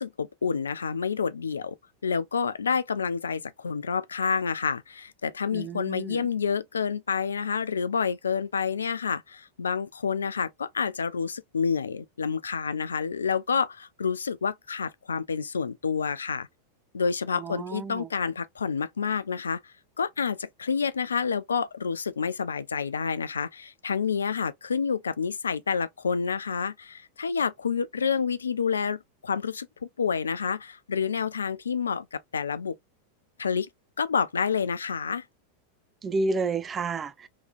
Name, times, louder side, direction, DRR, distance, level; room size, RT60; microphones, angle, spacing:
voice 1, 0.0-1.8 2.0-16.5 16.9-29.7 30.0-32.8 33.4-33.7 34.0-35.2, left 6 dB, 70° left, 0.3 m, -29 dB
voice 2, 5.5-6.3 17.4-18.1 36.0-37.3, right 3 dB, 20° right, 0.4 m, -30 dB
3.7 x 3.0 x 2.3 m
figure-of-eight pair, 90°, 0 cm